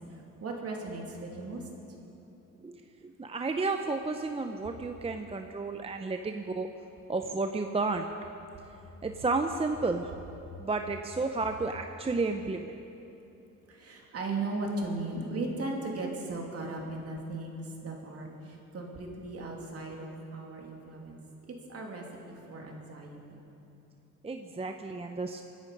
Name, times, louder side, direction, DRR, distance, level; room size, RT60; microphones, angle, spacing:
voice 1, 0.4-1.6 13.7-18.3 18.7-21.2 21.7-23.2, right 2 dB, 50° right, 0 dB, 3.0 m, -37 dB
voice 2, 2.6-6.7 7.1-8.1 9.0-10.1 10.6-12.7 24.2-25.4, right 3 dB, 20° right, 6 dB, 0.7 m, -32 dB
24.5 x 10.5 x 5.3 m, 3.0 s
cardioid pair, 90°, 30 cm